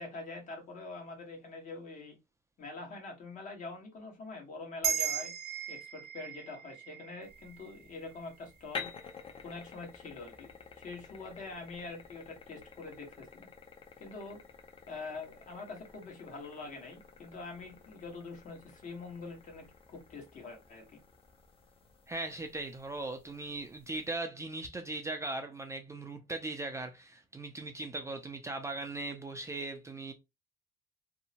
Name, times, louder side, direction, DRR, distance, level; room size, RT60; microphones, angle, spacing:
voice 1, 0.0-2.2 2.6-5.3 5.7-8.9 9.4-10.5 10.8-13.5 14.0-14.4 14.9-21.0, left 3 dB, 50° left, 1.2 m, -45 dB
sound 1, 4.8-9.5, right 9 dB, 60° right, 0.7 m, -38 dB
sound 2, 7.2-24.1, left 5 dB, 35° left, 0.6 m, -51 dB
voice 2, 22.1-30.1, right 2 dB, 15° right, 0.4 m, -39 dB
2.7 x 2.1 x 2.8 m
cardioid pair, 110°, 17 cm